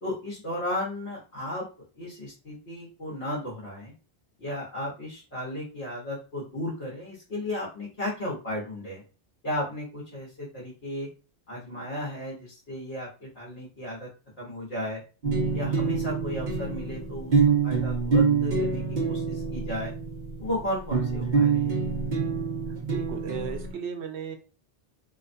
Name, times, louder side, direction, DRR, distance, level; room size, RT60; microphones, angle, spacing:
voice 1, 0.0-1.7 2.0-3.9 4.4-9.0 9.4-11.1 11.5-14.1 14.4-15.0 15.5-19.9 20.4-21.7, left 1 dB, 70° left, -5 dB, 1.3 m, -34 dB
sound 1, 15.2-23.7, right 5 dB, 50° right, 0.7 m, -26 dB
voice 2, 22.9-24.4, right 7 dB, 85° right, 5 dB, 0.9 m, -35 dB
2.9 x 2.2 x 2.5 m, 0.34 s
omnidirectional pair, 1.1 m